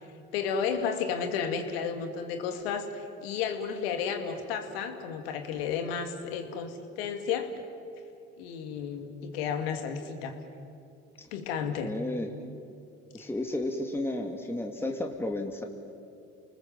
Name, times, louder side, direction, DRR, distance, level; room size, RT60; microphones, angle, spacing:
voice 1, 0.3-7.5 8.4-10.4 11.3-11.9 13.2-13.3, left 6 dB, 85° left, 6 dB, 2.5 m, -32 dB
voice 2, 11.8-12.3 13.1-15.6, left 1 dB, 10° left, 2 dB, 2.4 m, -32 dB
29.5 x 20.0 x 7.6 m, 2.5 s
supercardioid pair, 75°, 30 cm